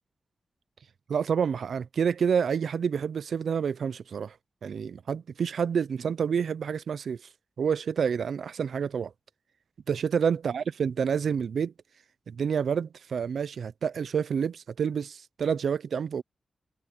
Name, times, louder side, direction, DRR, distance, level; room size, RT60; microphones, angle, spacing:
voice 1, 1.1-4.4 4.6-7.2 7.6-9.1 9.9-11.7 12.3-16.2, right 7 dB, 80° right, 0.4 m, -28 dB
wide cardioid pair, 160°, 0 cm